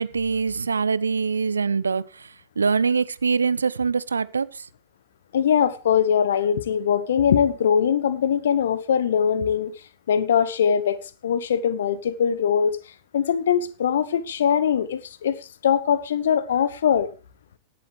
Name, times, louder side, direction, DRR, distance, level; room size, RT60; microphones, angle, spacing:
voice 1, 0.0-2.3 2.6-4.6, right 5 dB, 75° right, 0.6 m, -24 dB
voice 2, 5.3-9.7 10.1-11.0 11.2-12.8 13.1-17.1, left 8 dB, 65° left, 1.1 m, -21 dB
16.5 x 11.5 x 3.3 m
figure-of-eight pair, 90°, 0 cm